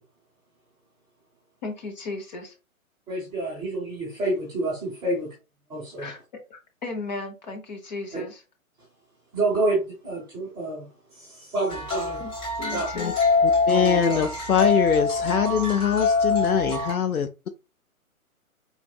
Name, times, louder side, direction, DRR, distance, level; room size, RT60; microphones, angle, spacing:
voice 1, 1.6-2.5 6.0-6.2 6.5-8.4 12.2-12.3 12.6-13.2 13.5-13.6, left 3 dB, 30° left, 0.9 m, -35 dB
voice 2, 3.1-5.3 5.7-6.1 8.1-8.2 9.3-12.2 12.7-12.9 13.7-14.3, right 2 dB, 10° right, 1.0 m, -28 dB
sound 1, 11.7-16.9, left 3 dB, 10° left, 1.1 m, -24 dB
voice 3, 13.7-17.3, left 7 dB, 80° left, 0.6 m, -23 dB
4.6 x 4.1 x 2.3 m
figure-of-eight pair, 130°, 43 cm